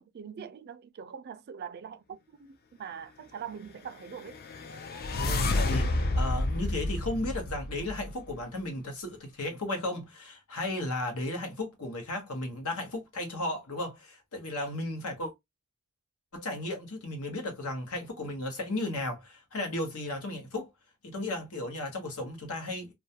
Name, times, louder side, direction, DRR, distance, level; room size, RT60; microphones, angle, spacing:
voice 1, 0.0-4.4, right 7 dB, 45° right, 0.3 m, -43 dB
sound 1, 4.2-8.3, left 2 dB, 45° left, 0.4 m, -30 dB
voice 2, 5.1-15.3 16.3-20.7 21.0-22.9, left 2 dB, 85° left, 1.0 m, -35 dB
2.3 x 2.2 x 2.6 m
head